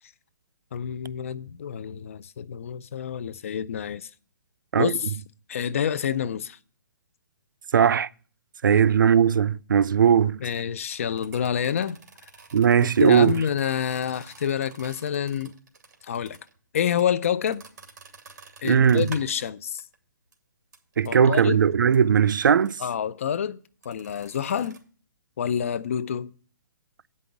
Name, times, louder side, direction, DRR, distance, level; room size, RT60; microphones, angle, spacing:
voice 1, 0.7-4.1 4.8-5.1 5.5-6.6 8.7-8.8 10.4-12.0 12.8-15.5 16.0-16.4 16.7-17.6 18.6-19.8 21.0-21.6 22.8-23.6 23.8-24.8 25.4-26.3, left 8 dB, 45° left, 0.5 m, -28 dB
voice 2, 7.7-8.1 8.6-10.4 12.5-13.3 18.6-19.1 21.0-22.8, right 7 dB, 80° right, 0.4 m, -19 dB
sound 1, 11.1-19.5 19.8-20.0 20.3-20.4 20.7-21.4 21.9-22.0 22.6-22.8 23.8-24.8, right 4 dB, 55° right, 2.2 m, -48 dB
8.6 x 5.4 x 7.1 m
hypercardioid pair, 165°, 10 cm